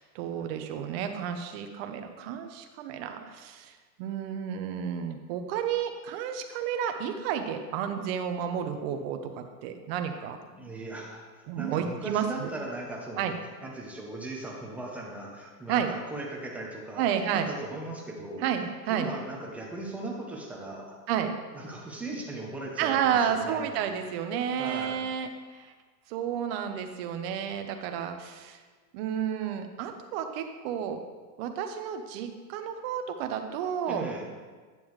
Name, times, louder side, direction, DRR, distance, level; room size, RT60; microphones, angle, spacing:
voice 1, 0.0-3.7 4.0-10.4 11.5-12.5 13.2-13.3 15.7-15.9 17.0-17.5 18.4-19.1 21.1-21.3 22.8-25.7 26.1-28.6 28.9-31.0 31.4-34.0, right 8 dB, 40° right, 6 dB, 0.7 m, -31 dB
voice 2, 10.5-11.2 11.6-13.2 13.6-17.1 17.3-18.5 18.9-21.0 21.5-23.8 24.6-25.1 33.9-34.3, right 2 dB, 5° right, -2 dB, 0.7 m, -38 dB
8.9 x 7.0 x 3.1 m, 1.4 s
hypercardioid pair, 140°, 50 cm